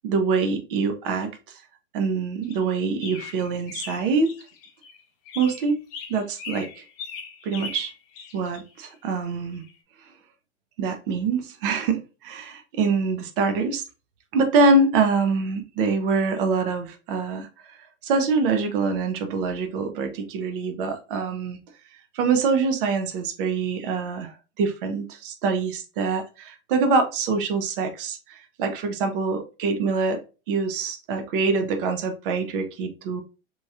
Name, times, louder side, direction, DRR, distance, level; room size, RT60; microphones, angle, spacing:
voice 1, 0.0-1.3 1.9-4.3 5.4-5.8 6.1-6.8 7.4-7.9 8.3-9.6 10.8-13.8 14.3-17.5 18.0-21.6 22.1-24.3 24.6-30.2 30.5-33.2, right 4 dB, 45° right, 6 dB, 0.6 m, -24 dB
sound 1, 2.4-5.0 5.2-8.8 9.6-9.7, left 5 dB, 35° left, 0.6 m, -39 dB
3.0 x 2.8 x 2.3 m, 0.33 s
hypercardioid pair, 145°, 36 cm